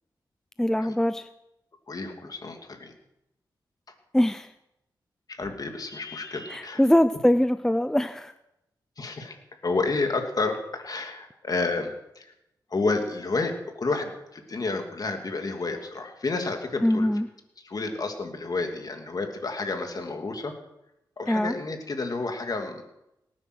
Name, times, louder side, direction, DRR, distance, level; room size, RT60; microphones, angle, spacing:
voice 1, 0.6-1.3 4.1-4.5 6.5-8.3 16.8-17.3 21.3-21.5, left 1 dB, 5° left, 12 dB, 0.6 m, -22 dB
voice 2, 1.9-2.9 5.3-6.8 9.0-9.4 9.6-12.3 12.7-17.1 17.6-20.5 21.2-22.9, left 3 dB, 50° left, 4 dB, 2.8 m, -30 dB
18.5 x 10.0 x 6.3 m, 0.87 s
cardioid pair, 75°, 8 cm